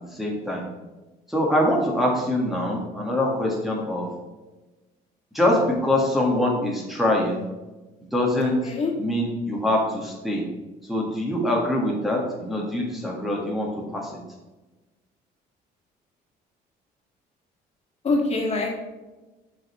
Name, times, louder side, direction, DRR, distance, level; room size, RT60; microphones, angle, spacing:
voice 1, 0.1-0.6 1.3-4.1 5.3-7.4 8.1-8.6 9.0-10.4 10.9-14.1, left 1 dB, ahead, -3 dB, 1.6 m, -24 dB
voice 2, 8.4-8.9 18.0-18.8, left 3 dB, 40° left, -1 dB, 1.9 m, -25 dB
7.4 x 5.2 x 4.3 m, 1.1 s
cardioid pair, 110°, 17 cm